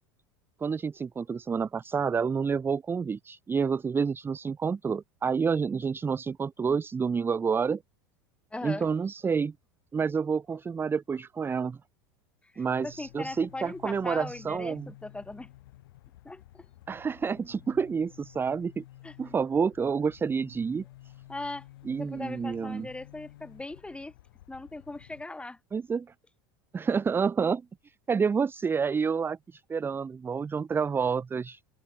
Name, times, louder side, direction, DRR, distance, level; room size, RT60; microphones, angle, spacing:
voice 1, 0.6-7.8 8.6-9.5 9.9-11.8 12.6-14.9 16.9-18.8 19.2-20.8 21.9-22.9 25.7-26.1 26.7-31.6, right 6 dB, 20° right, 0.5 m, -29 dB
voice 2, 8.5-8.9 12.5-15.5 16.2-16.7 19.0-19.2 21.3-21.7 22.0-24.1 24.5-25.6, left 2 dB, 10° left, 3.1 m, -39 dB
sound 1, 12.7-25.2, left 16 dB, 75° left, 7.2 m, -52 dB
hypercardioid pair, 90°, 12 cm